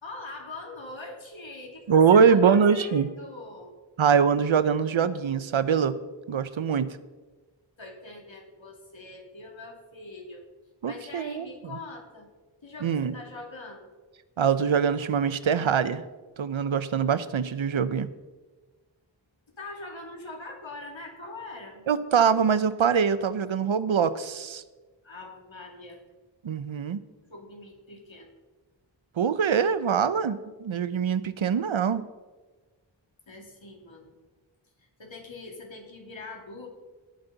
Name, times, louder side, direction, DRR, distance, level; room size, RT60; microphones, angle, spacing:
voice 1, 0.0-3.7 7.8-10.5 10.9-12.3 12.6-13.9 19.6-21.8 25.0-26.0 27.3-28.3 33.3-34.1 35.0-36.7, left 2 dB, 75° left, 1 dB, 2.7 m, -42 dB
voice 2, 1.9-3.1 4.0-6.0 6.3-7.0 10.8-11.8 12.8-13.1 14.4-16.0 16.4-18.1 21.9-24.6 26.4-27.0 29.2-32.0, right 6 dB, 85° right, 14 dB, 0.7 m, -23 dB
17.0 x 9.0 x 4.0 m, 1.3 s
wide cardioid pair, 55°, 46 cm